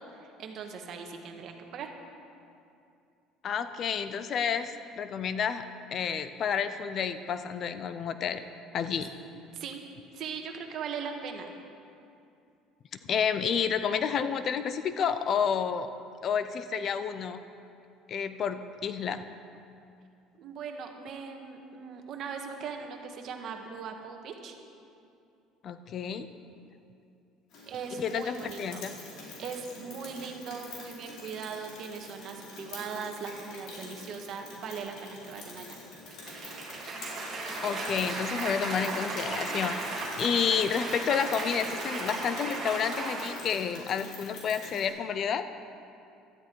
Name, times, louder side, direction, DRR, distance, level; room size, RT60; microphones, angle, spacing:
voice 1, 0.0-1.9 9.3-9.8 10.1-11.5 20.4-24.6 27.7-28.8 29.4-35.8, right 6 dB, 50° right, 3 dB, 1.6 m, -39 dB
voice 2, 3.4-5.6 5.9-8.5 8.7-9.1 13.1-15.9 16.2-17.4 18.1-19.2 25.6-26.3 28.0-28.9 37.6-39.8 40.2-45.5, left 7 dB, 40° left, 11 dB, 0.6 m, -30 dB
Rain, 27.5-44.9, left 2 dB, 60° left, 4.2 m, -46 dB
Cheering / Applause, 36.1-43.3, right 2 dB, 30° right, 3.1 m, -35 dB
17.5 x 12.5 x 4.7 m, 2.5 s
cardioid pair, 135°, 0 cm